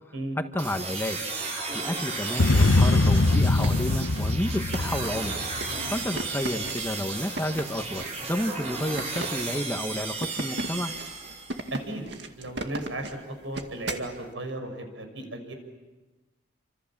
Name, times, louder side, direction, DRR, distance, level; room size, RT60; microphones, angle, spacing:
voice 1, 0.5-1.2 1.7-5.4 5.9-10.9, left 1 dB, 10° left, 6 dB, 1.3 m, -31 dB
sound 1, 0.6-11.8, right 4 dB, 35° right, 5.3 m, -34 dB
sound 2, 2.4-5.9, left 2 dB, 85° left, 1.0 m, -22 dB
sound 3, 3.6-14.1, right 2 dB, 60° right, 2.2 m, -37 dB
voice 2, 11.7-12.0 12.4-13.1 13.4-15.5, right 1 dB, 80° right, 5 dB, 6.1 m, -35 dB
28.5 x 26.5 x 7.4 m, 1.2 s
head